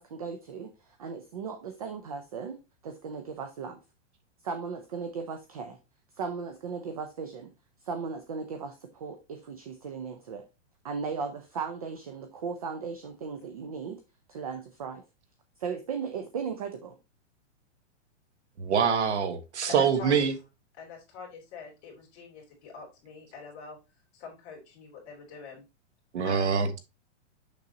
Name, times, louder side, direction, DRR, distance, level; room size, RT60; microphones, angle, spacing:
voice 1, 0.0-2.6 2.8-3.8 4.4-5.8 6.2-7.5 7.8-10.4 10.8-14.0 14.3-15.0 15.6-17.0, right 5 dB, 30° right, 0.5 m, -37 dB
voice 2, 18.6-20.3 26.1-26.8, right 6 dB, 70° right, 1.4 m, -25 dB
voice 3, 19.6-20.3 20.8-23.8 24.1-25.6 26.2-26.7, left 5 dB, 25° left, 2.7 m, -44 dB
6.7 x 6.2 x 2.8 m
hypercardioid pair, 180°, 36 cm